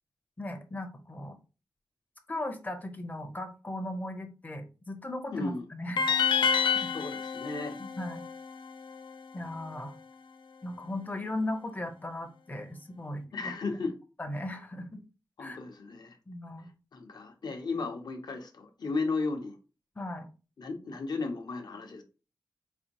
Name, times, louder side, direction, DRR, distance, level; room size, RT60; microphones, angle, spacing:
voice 1, 0.4-1.4 2.3-6.0 6.7-6.9 7.8-8.2 9.3-9.9 10.6-13.3 14.2-15.0 15.4-15.6 16.3-16.7 20.0-20.3, left 1 dB, 20° left, 0.6 m, -37 dB
voice 2, 5.3-5.6 6.9-7.8 13.3-13.9 15.4-16.2 16.9-19.6 20.6-22.0, left 3 dB, 60° left, 0.7 m, -35 dB
sound 1, 6.0-9.1, left 6 dB, 80° left, 0.4 m, -29 dB
4.1 x 2.6 x 2.9 m
wide cardioid pair, 150°, 8 cm